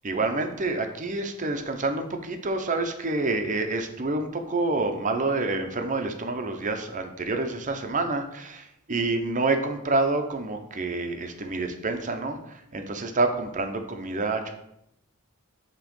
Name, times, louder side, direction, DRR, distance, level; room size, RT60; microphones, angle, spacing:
voice 1, 0.0-14.5, right 3 dB, 35° right, 6 dB, 0.7 m, -28 dB
7.6 x 3.1 x 5.2 m, 0.79 s
head